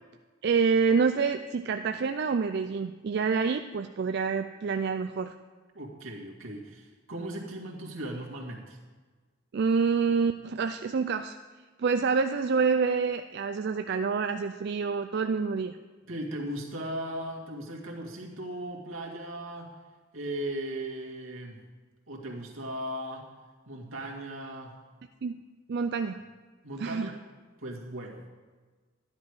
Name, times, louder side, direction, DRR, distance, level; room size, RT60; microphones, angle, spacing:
voice 1, 0.4-5.3 9.5-11.4 11.8-15.8 25.2-25.4 25.7-26.3 26.8-27.1, right 5 dB, 50° right, 7 dB, 0.3 m, -27 dB
voice 2, 5.7-8.8 16.1-19.7 20.1-21.6 22.1-23.3 23.7-24.8 26.6-27.2 27.6-28.3, right 1 dB, 80° right, -1 dB, 2.1 m, -37 dB
12.5 x 10.5 x 4.8 m, 1.4 s
head